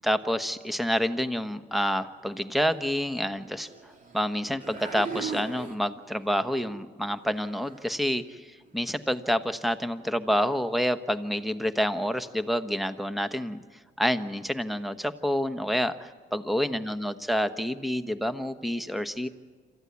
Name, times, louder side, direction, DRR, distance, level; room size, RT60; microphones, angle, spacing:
voice 1, 0.0-3.7 4.1-13.6 14.0-19.3, equal, ahead, 10 dB, 1.1 m, -28 dB
sound 1, 2.7-2.9 3.6-4.2 4.6-6.2 6.6-6.9 7.2-7.9 8.7-8.8, right 5 dB, 40° right, 3.0 m, -39 dB
27.0 x 14.5 x 9.5 m, 1.5 s
cardioid pair, 90°, 20 cm